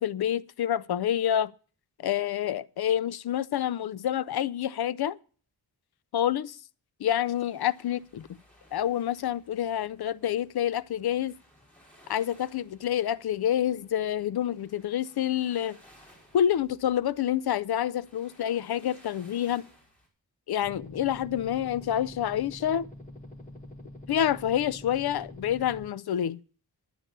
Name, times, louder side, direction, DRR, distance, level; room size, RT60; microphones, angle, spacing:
voice 1, 0.0-1.5 2.0-5.2 6.1-6.6 7.0-8.3 8.7-11.3 12.1-15.8 16.3-19.7 20.5-22.9 24.1-26.4, left 10 dB, 70° left, 0.5 m, -28 dB
sound 1, 7.2-20.1, equal, 5° left, 5.0 m, -60 dB
sound 2, 20.6-25.9, left 1 dB, 20° left, 1.7 m, -45 dB
11.0 x 8.7 x 6.6 m
wide cardioid pair, 155°, 40 cm